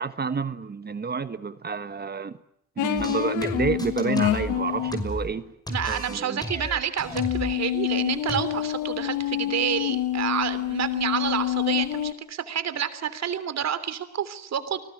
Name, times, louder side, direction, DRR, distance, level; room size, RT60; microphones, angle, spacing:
voice 1, 0.0-2.4 2.8-5.5 5.8-6.4, right 5 dB, 35° right, 12 dB, 1.4 m, -29 dB
sound 1, 2.8-5.0 7.1-12.1, left 12 dB, 85° left, 1.4 m, -27 dB
sound 2, 3.0-5.4 5.7-7.6 8.3-8.4, left 1 dB, 15° left, 5.9 m, -34 dB
voice 2, 5.7-14.8, right 8 dB, 60° right, 12 dB, 3.3 m, -29 dB
30.0 x 19.5 x 9.1 m, 0.76 s
cardioid pair, 90°, 30 cm